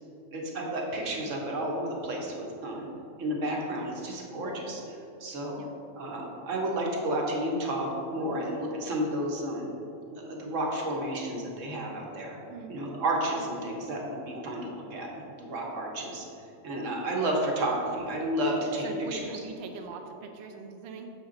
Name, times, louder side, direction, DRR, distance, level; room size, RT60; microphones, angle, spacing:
voice 1, 0.3-2.9 3.2-5.6 6.0-9.6 10.2-12.4 12.7-15.1 15.4-16.2 16.6-19.3, right 1 dB, 85° right, -1 dB, 1.3 m, -31 dB
voice 2, 18.6-21.1, right 4 dB, 65° right, 3 dB, 0.8 m, -42 dB
6.4 x 4.6 x 3.8 m, 2.7 s
omnidirectional pair, 1.3 m